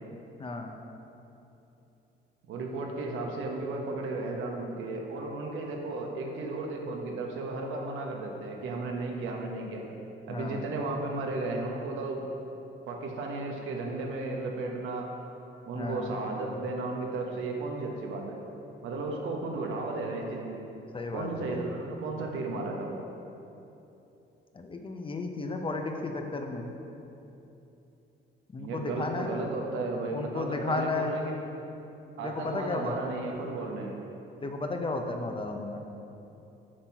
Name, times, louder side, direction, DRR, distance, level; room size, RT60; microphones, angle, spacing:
voice 1, 0.4-0.8 10.3-10.6 15.7-16.1 20.9-21.6 24.5-26.7 28.5-29.3 30.1-31.2 32.2-33.0 34.4-35.8, left 3 dB, 25° left, 4 dB, 0.6 m, -33 dB
voice 2, 2.5-9.8 10.3-12.2 12.9-15.1 15.7-18.4 18.8-20.6 21.1-23.0 28.6-31.4 32.2-33.9, right 2 dB, 85° right, 1 dB, 1.0 m, -34 dB
7.5 x 4.4 x 4.6 m, 2.9 s
cardioid pair, 90°, 20 cm